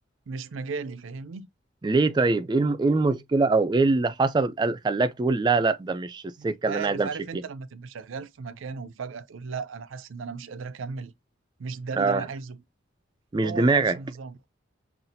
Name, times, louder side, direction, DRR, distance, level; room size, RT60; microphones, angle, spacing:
voice 1, 0.3-1.5 6.4-11.1 11.6-12.6 13.4-14.4, right 5 dB, 85° right, 0.5 m, -36 dB
voice 2, 1.8-7.1 12.0-12.2 13.3-14.0, right 3 dB, 20° right, 0.3 m, -23 dB
5.5 x 2.4 x 2.6 m
head